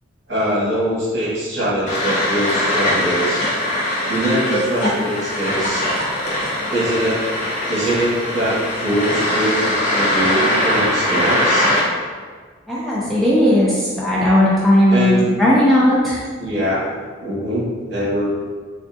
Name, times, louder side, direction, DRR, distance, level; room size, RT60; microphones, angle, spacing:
voice 1, 0.3-3.4 4.1-5.9 6.7-7.2 7.7-11.8 13.0-13.1 14.9-15.3 16.4-16.9 17.2-18.3, right 1 dB, 55° right, -7 dB, 1.1 m, -22 dB
sound 1, 1.9-11.8, left 1 dB, 40° left, 0.6 m, -21 dB
voice 2, 12.7-13.7 14.0-16.2, left 1 dB, ahead, -8 dB, 0.3 m, -15 dB
3.4 x 2.3 x 2.6 m, 1.6 s
head